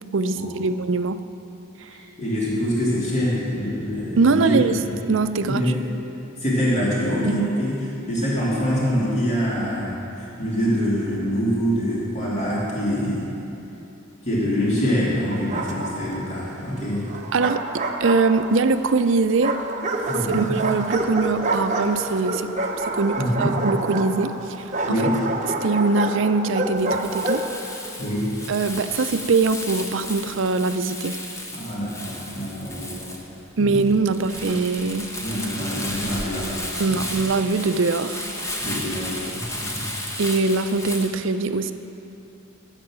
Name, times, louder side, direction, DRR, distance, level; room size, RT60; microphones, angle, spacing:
voice 1, 0.1-1.2 4.2-5.7 7.2-7.5 17.3-19.5 20.3-25.1 25.6-27.4 28.5-31.2 33.6-35.1 36.8-38.2 39.2-39.3 40.2-41.7, right 3 dB, 65° right, 11 dB, 0.5 m, -22 dB
voice 2, 1.9-5.0 5.4-5.8 6.4-7.7 8.1-13.2 14.2-17.1 20.1-20.5 23.2-23.5 24.9-25.1 28.0-28.2 31.5-33.1 33.6-33.8 35.2-37.0 38.6-39.9, equal, 35° left, -7 dB, 2.6 m, -25 dB
Bark, 15.3-16.2 17.1-18.7 19.4-27.5, right 2 dB, 35° right, 0.8 m, -27 dB
Crumpling crinkling, 26.7-41.1, left 1 dB, 15° left, 1.0 m, -34 dB
13.5 x 8.3 x 6.2 m, 2.9 s
head